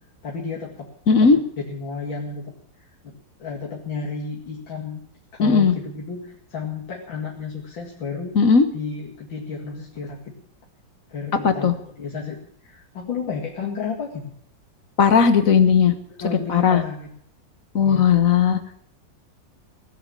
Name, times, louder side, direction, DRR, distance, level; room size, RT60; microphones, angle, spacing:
voice 1, 0.2-1.3 1.7-2.5 2.8-5.0 5.4-8.4 8.7-10.3 11.1-12.4 12.6-14.3 16.1-17.1 17.8-18.1, left 5 dB, 85° left, -4 dB, 3.0 m, -32 dB
voice 2, 1.1-1.4 5.4-5.7 8.3-8.7 11.4-11.7 15.0-15.9 16.5-16.8 17.7-18.8, left 6 dB, 50° left, 9 dB, 1.6 m, -16 dB
18.0 x 7.9 x 8.9 m, 0.65 s
omnidirectional pair, 2.0 m